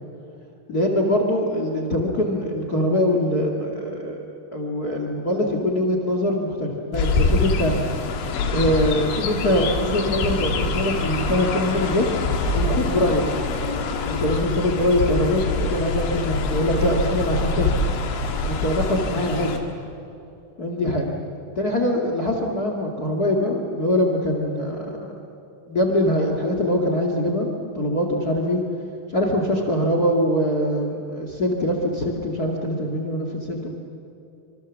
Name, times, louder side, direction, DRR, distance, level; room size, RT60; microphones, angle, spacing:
voice 1, 0.7-7.8 8.5-12.1 12.5-13.3 14.0-17.8 18.4-19.6 20.6-21.2 21.5-25.1 25.7-27.5 27.7-28.6 29.1-33.7, left 1 dB, 50° left, 2 dB, 1.1 m, -23 dB
Chirp tweet, 6.9-19.6, left 3 dB, 75° left, 4.3 m, -25 dB
27.0 x 26.0 x 7.3 m, 2.7 s
omnidirectional pair, 5.4 m